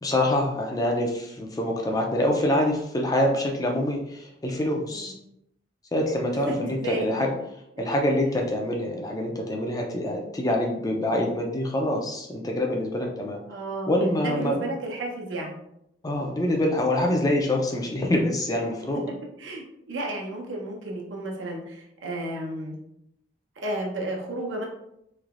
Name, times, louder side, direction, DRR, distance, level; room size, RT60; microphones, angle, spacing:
voice 1, 0.0-5.1 5.9-7.3 7.8-13.4 13.9-14.6 16.0-19.1, left 1 dB, 20° left, 1 dB, 0.4 m, -25 dB
voice 2, 6.5-7.0 13.5-13.9 14.2-15.6 19.4-22.8 23.6-24.7, right 1 dB, 85° right, 0 dB, 0.7 m, -32 dB
3.2 x 2.9 x 2.4 m, 0.80 s
head